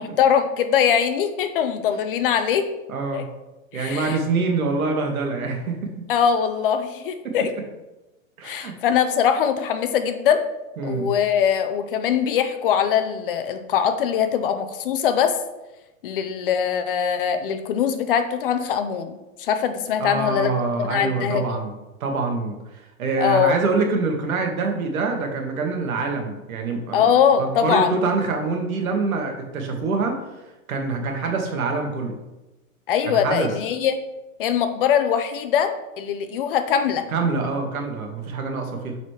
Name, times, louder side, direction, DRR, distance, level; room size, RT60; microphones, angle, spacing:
voice 1, 0.0-2.7 3.1-3.2 3.7-4.2 6.1-7.5 8.4-10.4 10.8-15.3 16.0-20.5 20.8-21.4 23.2-23.6 26.9-27.9 32.9-34.0 34.4-37.0, left 8 dB, 40° left, 8 dB, 0.5 m, -22 dB
voice 2, 2.9-3.3 3.7-5.9 7.2-7.4 8.4-8.8 10.8-11.1 20.0-21.7 22.0-27.0 27.4-30.2 30.7-32.2 33.0-33.5 37.1-39.0, right 4 dB, 80° right, 3 dB, 1.5 m, -25 dB
7.8 x 4.1 x 3.2 m, 1.0 s
hypercardioid pair, 155°, 41 cm